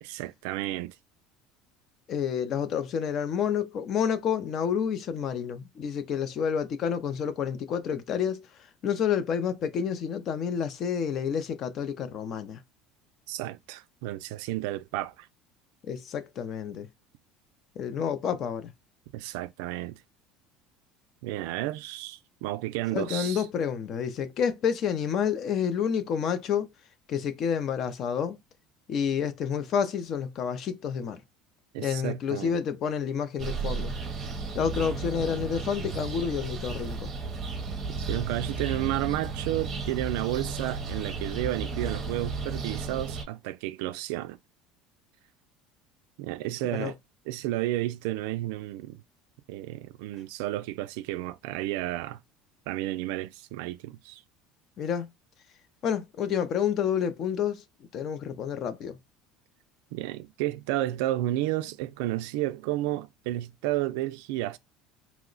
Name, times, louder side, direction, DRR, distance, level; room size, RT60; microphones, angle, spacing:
voice 1, 0.0-0.9 13.3-15.3 19.1-20.0 21.2-23.4 31.7-32.6 38.0-44.4 46.2-46.9 47.3-49.0 49.5-52.2 52.7-54.2 59.9-64.6, right 15 dB, 75° right, 0.3 m, -32 dB
voice 2, 2.1-8.5 8.8-12.6 15.8-16.9 17.8-18.7 22.9-26.7 27.1-28.4 28.9-31.2 31.8-34.0 34.5-37.1 46.7-46.9 54.8-55.1 55.8-57.6 57.9-59.0, left 7 dB, 35° left, 0.4 m, -29 dB
sound 1, 33.4-43.2, right 4 dB, 25° right, 0.6 m, -34 dB
2.9 x 2.0 x 3.7 m
cardioid pair, 170°, 0 cm